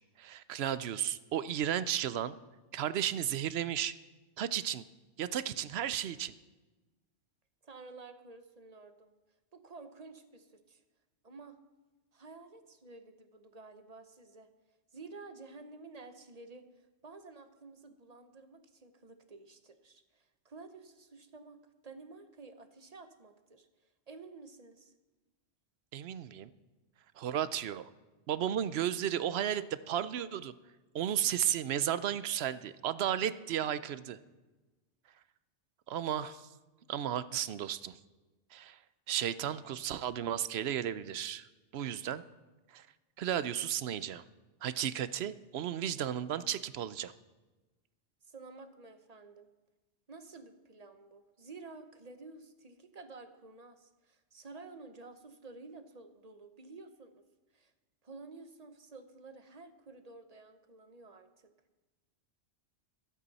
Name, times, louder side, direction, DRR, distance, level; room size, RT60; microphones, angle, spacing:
voice 1, 0.2-2.4 2.7-3.9 4.4-4.8 5.2-6.3 25.9-26.5 27.2-27.9 28.3-30.5 30.9-34.2 35.9-36.5 36.9-38.0 38.5-38.8 39.1-41.5 41.7-42.2 42.7-42.9 43.2-44.2 44.6-47.1, right 10 dB, 70° right, 15 dB, 0.8 m, -34 dB
voice 2, 7.6-9.1 9.5-10.8 11.2-11.6 12.1-14.5 14.9-16.6 17.0-23.7 24.1-24.9 48.3-49.5 50.1-57.2 57.5-57.7 58.0-61.5, right 3 dB, 40° right, 9 dB, 0.9 m, -51 dB
22.0 x 8.4 x 4.1 m, 1.2 s
omnidirectional pair, 1.2 m